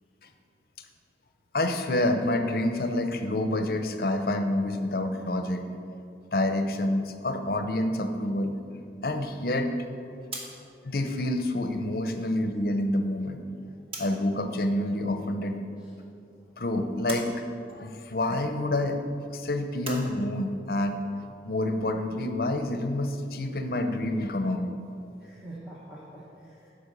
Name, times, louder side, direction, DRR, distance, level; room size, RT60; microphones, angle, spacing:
voice 1, 1.5-5.6 6.3-8.5 9.0-9.7 10.8-13.4 14.0-15.6 16.6-17.4 17.7-19.0 19.3-21.0 21.4-24.7, left 1 dB, 55° left, 7 dB, 0.7 m, -28 dB
sound 1, 10.1-14.4 14.7-15.7 16.1-20.0, right 2 dB, 30° right, 1.2 m, -44 dB
voice 2, 25.2-26.7, right 1 dB, 5° right, -7 dB, 0.9 m, -46 dB
8.7 x 5.2 x 6.7 m, 2.5 s
head